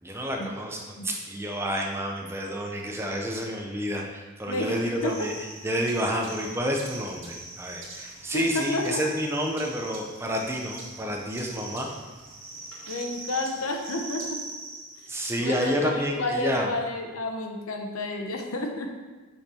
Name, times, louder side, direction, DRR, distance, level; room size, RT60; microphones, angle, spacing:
voice 1, 0.0-5.3 5.6-11.9 15.1-16.7, equal, 10° right, 1 dB, 0.7 m, -29 dB
voice 2, 4.5-5.1 8.3-9.0 12.9-14.4 15.4-18.9, left 2 dB, 85° left, 3 dB, 1.0 m, -30 dB
sound 1, 4.7-15.6, right 3 dB, 65° right, 1.9 m, -42 dB
6.6 x 5.8 x 4.4 m, 1.3 s
head